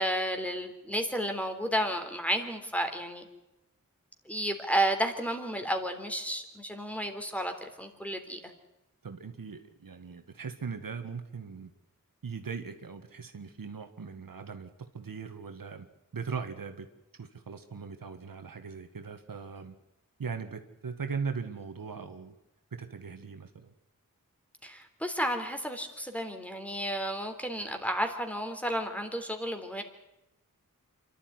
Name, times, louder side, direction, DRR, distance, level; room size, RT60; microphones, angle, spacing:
voice 1, 0.0-3.2 4.3-8.5 24.6-29.8, equal, 5° left, 5 dB, 3.6 m, -32 dB
voice 2, 9.0-11.7 12.2-14.7 14.9-15.9 16.1-16.9 17.2-19.8 20.2-22.4 22.7-23.7, right 5 dB, 85° right, 7 dB, 1.8 m, -39 dB
26.5 x 13.0 x 9.6 m, 0.93 s
wide cardioid pair, 65°, 33 cm